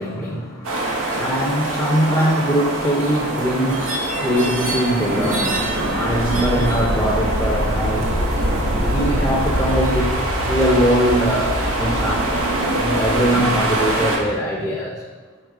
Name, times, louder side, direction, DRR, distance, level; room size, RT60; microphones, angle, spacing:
voice 1, 0.0-8.5 8.9-10.1 10.4-15.0, equal, 10° left, -4 dB, 0.6 m, -22 dB
sound 1, 0.6-14.2, right 1 dB, 85° right, 1.1 m, -22 dB
6.5 x 4.2 x 4.8 m, 1.4 s
head